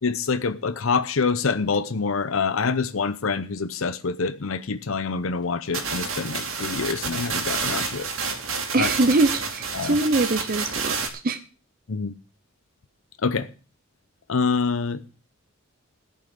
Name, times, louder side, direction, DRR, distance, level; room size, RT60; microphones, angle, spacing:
voice 1, 0.0-8.1 8.7-8.9 9.7-10.0 11.9-12.1 13.2-13.5 14.3-15.1, left 4 dB, 70° left, 0.7 m, -26 dB
sound 1, 5.7-11.1, right 5 dB, 70° right, 2.5 m, -29 dB
voice 2, 8.7-11.0 11.2-11.4, right 3 dB, 45° right, 0.7 m, -22 dB
14.5 x 5.6 x 7.6 m
head